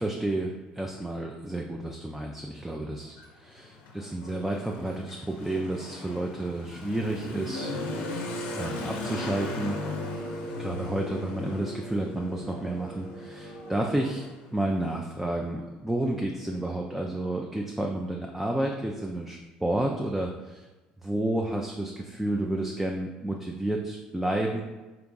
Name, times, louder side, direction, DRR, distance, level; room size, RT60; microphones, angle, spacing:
voice 1, 0.0-7.7 8.5-9.8 10.2-14.2 14.5-20.7 21.0-24.6, right 1 dB, 5° right, 0 dB, 0.4 m, -31 dB
Motorcycle / Accelerating revving vroom, 3.0-15.4, left 4 dB, 65° left, 0.6 m, -39 dB
sound 1, 7.5-14.3, right 2 dB, 75° right, 0.7 m, -39 dB
3.4 x 3.0 x 3.7 m, 1.2 s
hypercardioid pair, 65°, 4 cm